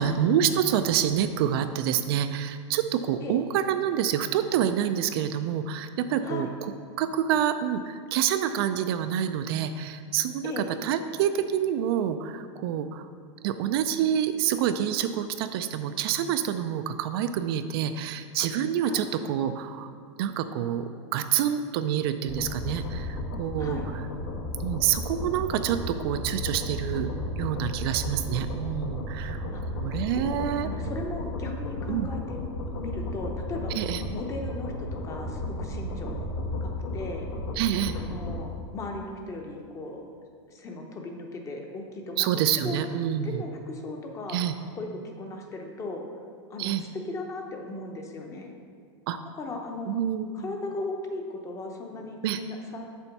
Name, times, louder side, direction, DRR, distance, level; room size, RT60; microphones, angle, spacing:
voice 1, 0.0-6.5 7.0-13.1 13.4-19.9 20.2-23.8 24.6-27.1 27.4-30.7 31.9-32.1 33.7-34.0 37.6-37.9 42.2-43.4 44.3-44.5 46.6-46.8 49.1-49.2 49.9-50.5 52.2-52.4, right 9 dB, 55° right, 9 dB, 0.4 m, -27 dB
voice 2, 6.2-6.5 10.4-10.7 18.8-19.0 23.6-23.9 29.5-29.6 30.1-32.4 32.7-33.7 34.1-36.3 36.6-37.3 37.9-40.0 40.5-42.8 43.2-44.4 44.7-46.0 46.5-48.5 49.4-50.0 50.3-52.8, left 3 dB, 20° left, 3 dB, 0.7 m, -37 dB
sound 1, 22.3-38.4, left 1 dB, 75° left, 1.3 m, -34 dB
6.9 x 4.4 x 5.8 m, 2.1 s
supercardioid pair, 155°, 15 cm